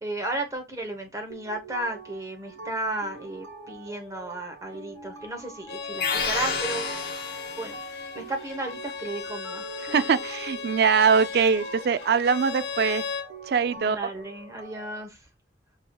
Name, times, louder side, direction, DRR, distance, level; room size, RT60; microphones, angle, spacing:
voice 1, 0.0-7.0 7.6-9.6 13.8-15.2, right 2 dB, 20° right, 0.8 m, -34 dB
sound 1, 1.3-15.0, right 3 dB, 80° right, 1.1 m, -44 dB
Bowed string instrument, 5.7-13.3, left 6 dB, 70° left, 0.6 m, -36 dB
sound 2, 6.0-7.9, left 5 dB, 50° left, 1.2 m, -30 dB
voice 2, 9.8-13.0 13.5-14.0, right 6 dB, 60° right, 0.3 m, -22 dB
6.7 x 2.7 x 2.2 m
head